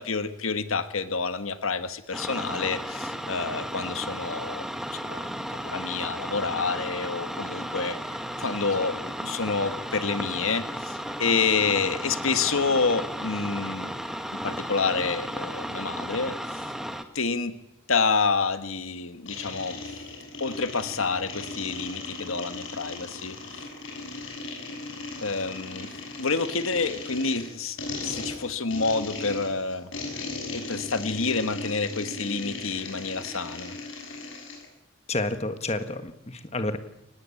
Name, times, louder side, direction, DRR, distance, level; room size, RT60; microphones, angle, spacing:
voice 1, 0.0-4.7 5.0-8.0 8.4-13.9 14.4-16.6 17.1-17.5 17.9-19.8 20.4-23.4 25.2-25.9 26.2-27.8 28.0-29.9 30.5-33.7, left 4 dB, 80° left, 10 dB, 1.6 m, -28 dB
sound 1, 2.1-17.0, equal, ahead, 1.5 m, -34 dB
sound 2, 19.3-34.7, left 3 dB, 65° left, 7.1 m, -37 dB
voice 2, 35.1-36.8, left 2 dB, 30° left, 9 dB, 1.6 m, -30 dB
24.0 x 19.5 x 8.5 m, 0.80 s
head